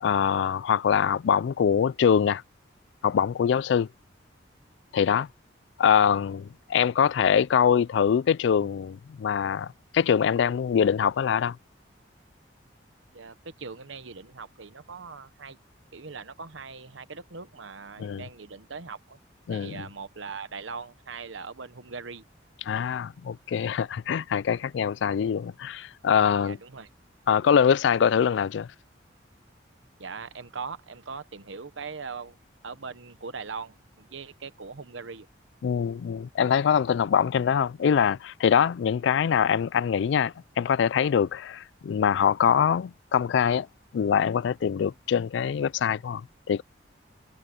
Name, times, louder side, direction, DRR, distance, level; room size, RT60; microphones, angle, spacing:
voice 1, 0.0-2.4 3.0-3.9 4.9-5.3 5.8-11.6 18.0-18.2 19.5-19.9 22.6-26.6 27.3-28.7 35.6-43.7 43.9-46.6, left 7 dB, 70° left, 0.3 m, -24 dB
voice 2, 13.1-15.6 15.9-19.2 19.5-22.2 26.4-26.9 30.0-32.4 32.6-35.3, right 5 dB, 85° right, 1.0 m, -40 dB
head